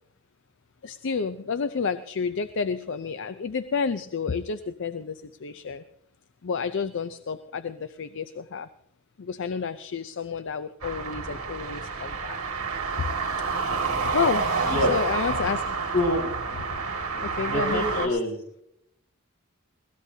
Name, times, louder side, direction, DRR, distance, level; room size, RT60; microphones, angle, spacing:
voice 1, 0.8-5.8 6.4-8.7 9.2-12.4 13.0-13.1 14.1-15.6 17.2-18.2, left 5 dB, 60° left, 12 dB, 0.5 m, -30 dB
sound 1, 10.8-18.1, right 4 dB, 85° right, 2.2 m, -29 dB
voice 2, 14.6-15.2 15.9-16.3 17.1-18.4, left 1 dB, 80° left, -3 dB, 5.9 m, -27 dB
21.5 x 17.0 x 2.8 m, 0.73 s
head